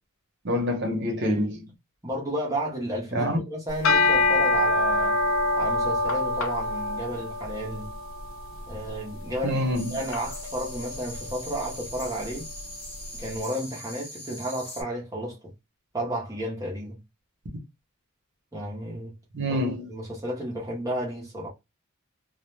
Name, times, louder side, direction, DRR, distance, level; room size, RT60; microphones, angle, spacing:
voice 1, 0.4-1.7 3.1-3.4 9.4-9.9 19.3-19.8, equal, 55° right, 0.8 m, -26 dB
voice 2, 2.0-5.2 5.6-8.0 8.7-12.5 13.1-15.4 15.9-17.0 18.5-19.2 19.5-19.6 19.9-21.5, equal, 15° right, 0.7 m, -32 dB
sound 1, 3.7-13.0, left 2 dB, 65° left, 0.5 m, -27 dB
sound 2, 9.7-14.8, left 1 dB, 25° left, 0.9 m, -41 dB
2.3 x 2.2 x 3.1 m
head